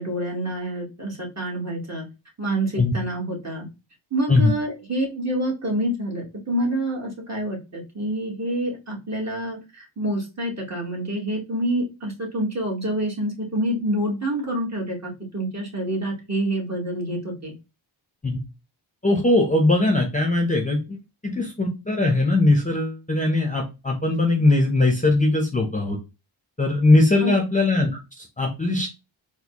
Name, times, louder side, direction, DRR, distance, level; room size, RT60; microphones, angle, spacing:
voice 1, 0.0-2.0 2.4-3.7 4.1-17.5 27.2-27.5, right 1 dB, 35° right, -2 dB, 1.7 m, -27 dB
voice 2, 19.0-21.0 21.2-26.0 26.6-28.9, left 2 dB, 15° left, 2 dB, 0.8 m, -20 dB
4.1 x 2.3 x 2.9 m, 0.26 s
cardioid pair, 70°, 48 cm